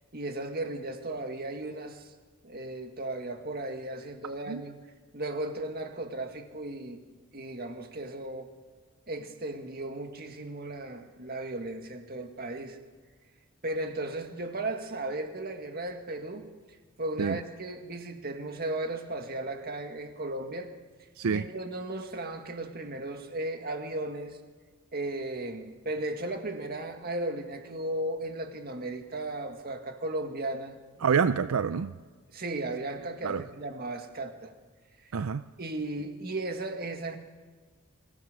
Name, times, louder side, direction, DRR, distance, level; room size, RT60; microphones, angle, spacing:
voice 1, 0.1-2.1 2.4-4.8 5.1-7.0 7.3-8.5 9.1-12.8 13.6-20.7 21.3-24.4 24.9-31.2 32.3-34.5 35.0-35.1 35.6-37.2, right 2 dB, 45° right, 5 dB, 1.9 m, -36 dB
voice 2, 31.0-31.9 33.2-33.4 35.1-35.4, right 6 dB, 85° right, 13 dB, 0.5 m, -27 dB
23.5 x 16.5 x 6.7 m, 1.4 s
head